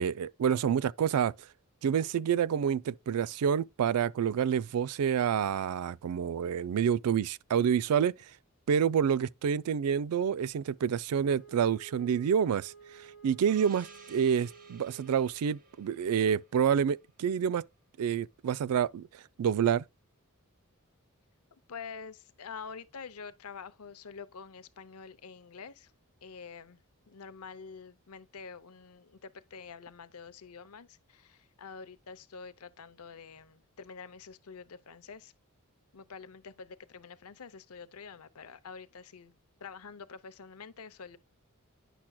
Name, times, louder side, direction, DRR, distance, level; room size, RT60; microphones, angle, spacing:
voice 1, 0.0-1.3 1.8-8.1 8.7-12.7 13.2-17.7 18.0-19.1 19.4-19.8, right 8 dB, 85° right, 0.3 m, -28 dB
Wind instrument woodwind instrument, 11.1-15.8, right 6 dB, 60° right, 3.7 m, -53 dB
Gong, 13.5-17.8, right 5 dB, 40° right, 1.3 m, -57 dB
voice 2, 21.7-25.9 26.2-26.8 27.1-35.3 35.9-39.3 39.6-41.2, left 5 dB, 75° left, 0.7 m, -47 dB
10.0 x 6.0 x 2.2 m
head